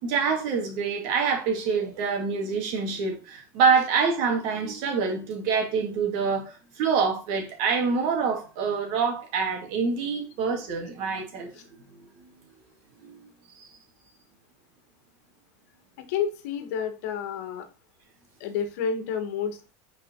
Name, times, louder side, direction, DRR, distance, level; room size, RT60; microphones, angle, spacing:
voice 1, 0.0-11.8 13.0-13.7, right 5 dB, 60° right, 2.3 m, -26 dB
voice 2, 16.0-17.7 18.4-19.6, left 7 dB, 70° left, 1.4 m, -30 dB
5.7 x 4.9 x 3.8 m
supercardioid pair, 130°, 9 cm